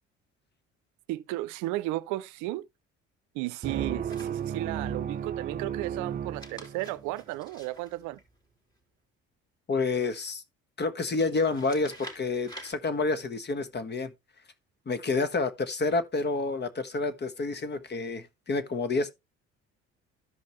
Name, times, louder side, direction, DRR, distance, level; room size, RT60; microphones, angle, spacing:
voice 1, 1.1-2.7 3.3-8.2, right 17 dB, 75° right, 0.6 m, -34 dB
sound 1, 3.6-7.2, right 8 dB, 30° right, 0.5 m, -34 dB
sound 2, 4.1-4.8 6.2-8.8 11.1-12.7, right 1 dB, 15° left, 3.3 m, -49 dB
voice 2, 9.7-10.4 10.8-14.1 14.9-19.1, left 3 dB, 35° left, 1.3 m, -29 dB
13.5 x 5.2 x 3.1 m
hypercardioid pair, 65°, 30 cm